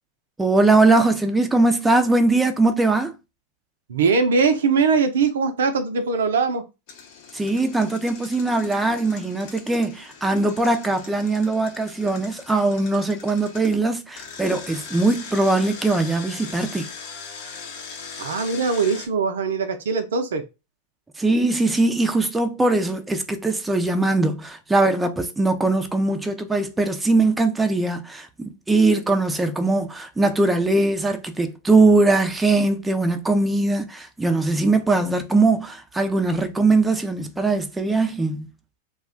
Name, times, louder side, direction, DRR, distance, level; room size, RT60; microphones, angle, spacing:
voice 1, 0.4-3.1 7.3-16.8 21.2-38.5, right 2 dB, 10° right, 0.4 m, -21 dB
voice 2, 3.9-6.6 18.2-20.4, right 5 dB, 70° right, 0.4 m, -21 dB
Engine, 6.9-13.7 14.2-19.1, left 5 dB, 55° left, 0.7 m, -40 dB
2.3 x 2.2 x 3.6 m
hypercardioid pair, 100°, 0 cm